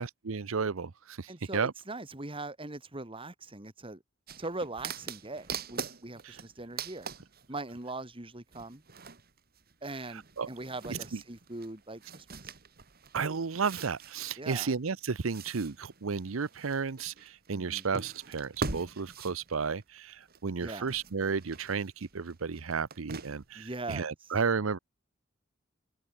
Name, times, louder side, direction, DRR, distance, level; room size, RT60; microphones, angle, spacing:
voice 1, 0.0-1.7 6.2-6.4 10.1-10.5 11.1-11.2 13.1-24.8, right 5 dB, 90° right, 0.7 m, -33 dB
voice 2, 1.3-4.0 4.4-7.1 7.5-8.8 9.8-12.5 14.4-14.7 17.5-17.9 20.6-20.9 23.5-24.1, right 2 dB, 25° right, 2.3 m, -41 dB
sound 1, 4.3-7.9 8.5-20.6 20.9-23.6 24.0-24.1, right 4 dB, 50° right, 2.5 m, -43 dB
open air
head